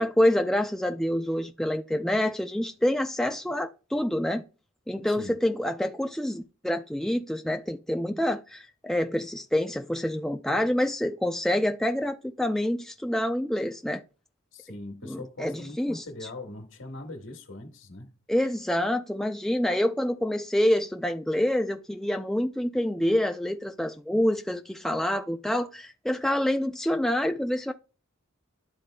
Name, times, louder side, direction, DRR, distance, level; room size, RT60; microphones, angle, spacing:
voice 1, 0.0-4.4 4.9-14.0 15.0-16.0 18.3-27.7, left 1 dB, ahead, 0.3 m, -27 dB
voice 2, 14.5-18.1, left 2 dB, 65° left, 1.3 m, -41 dB
12.0 x 4.0 x 2.2 m
head